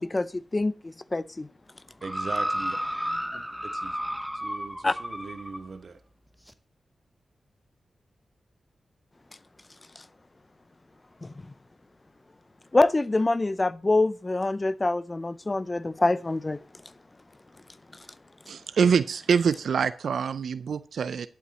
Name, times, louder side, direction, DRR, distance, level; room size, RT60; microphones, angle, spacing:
voice 1, 0.0-1.5 4.8-4.9 11.2-11.3 12.7-16.6, left 2 dB, 30° left, 0.5 m, -25 dB
sound 1, 2.0-5.7 6.5-6.6, equal, ahead, 0.8 m, -32 dB
voice 2, 2.0-2.8 3.3-4.0 4.3-6.0, right 4 dB, 60° right, 1.2 m, -40 dB
voice 3, 18.5-21.3, right 6 dB, 80° right, 0.4 m, -25 dB
11.5 x 8.3 x 4.1 m
cardioid pair, 50°, 0 cm